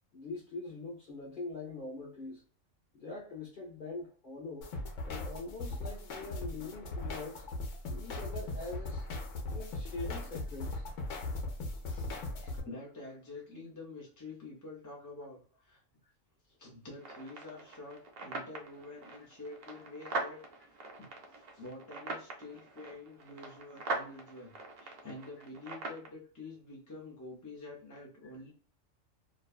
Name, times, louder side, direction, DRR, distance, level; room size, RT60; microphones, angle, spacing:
voice 1, 0.1-2.4 2.9-4.7 5.0-7.4 7.9-9.1 9.5-10.8 11.9-12.1 28.0-28.3, left 3 dB, 50° left, 0.8 m, -43 dB
sound 1, 4.6-12.6, left 2 dB, 75° left, 1.0 m, -39 dB
voice 2, 12.2-15.8 16.5-20.8 21.3-24.5 24.8-28.5, left 2 dB, 25° left, 0.4 m, -48 dB
sound 2, 17.0-26.1, right 3 dB, 55° right, 0.8 m, -42 dB
2.6 x 2.2 x 2.3 m
omnidirectional pair, 1.4 m